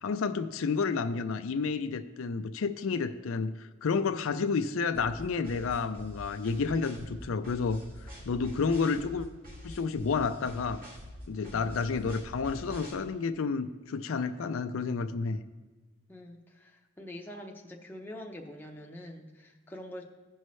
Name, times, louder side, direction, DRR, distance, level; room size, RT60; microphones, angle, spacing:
voice 1, 0.0-7.8 8.3-9.3 9.6-10.8 11.3-15.4, left 5 dB, 80° left, 9 dB, 0.4 m, -30 dB
sound 1, 4.9-12.9, equal, 40° right, 2.4 m, -46 dB
voice 2, 16.1-20.1, left 1 dB, 10° left, 0 dB, 0.7 m, -45 dB
16.0 x 5.4 x 3.2 m, 1.2 s
head